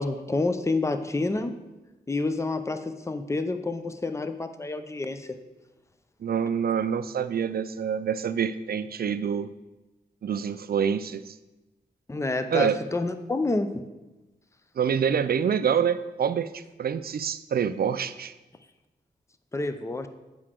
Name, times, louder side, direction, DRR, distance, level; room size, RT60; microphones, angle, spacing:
voice 1, 0.0-1.6 2.1-5.4 12.1-13.9 19.5-20.1, left 3 dB, 15° left, 9 dB, 0.5 m, -28 dB
voice 2, 6.2-9.5 10.2-11.3 12.5-12.8 14.8-18.3, right 7 dB, 60° right, 13 dB, 0.4 m, -26 dB
8.5 x 4.7 x 3.7 m, 1.1 s
cardioid pair, 55°, 18 cm